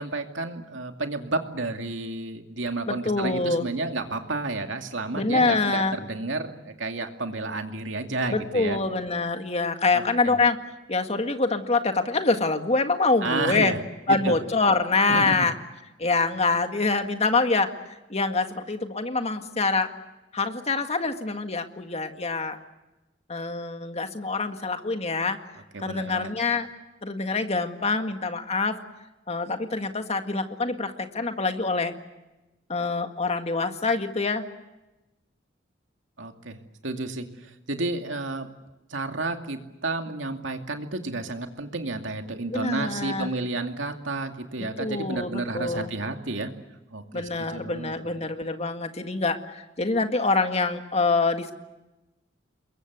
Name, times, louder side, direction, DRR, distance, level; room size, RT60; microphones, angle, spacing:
voice 1, 0.0-8.8 9.9-10.4 13.2-13.8 14.1-14.3 15.1-15.3 25.7-26.3 36.2-38.5 38.9-46.5 46.9-47.9, right 2 dB, 80° right, 5 dB, 2.4 m, -31 dB
voice 2, 2.9-3.7 5.1-6.0 8.3-10.6 10.9-13.7 14.1-15.5 16.0-17.7 18.1-19.9 20.3-22.6 23.3-25.4 25.8-26.7 27.0-28.8 29.3-31.9 32.7-34.4 42.5-43.3 44.8-45.9 47.1-51.5, left 3 dB, 35° left, 7 dB, 1.9 m, -25 dB
28.0 x 22.5 x 8.2 m, 1.0 s
head